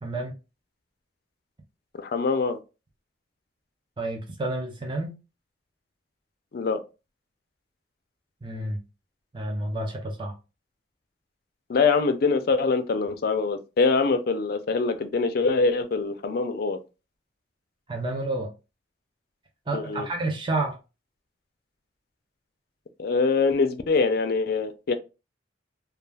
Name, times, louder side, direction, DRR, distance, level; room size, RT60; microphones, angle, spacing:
voice 1, 0.0-0.4 4.0-5.2 8.4-8.8 9.3-10.3 17.9-18.5 19.7-20.8, right 2 dB, 25° right, 0.5 m, -30 dB
voice 2, 1.9-2.6 6.5-6.8 11.7-16.8 19.7-20.1 23.0-25.0, left 4 dB, 55° left, 0.4 m, -24 dB
2.3 x 2.3 x 3.2 m
head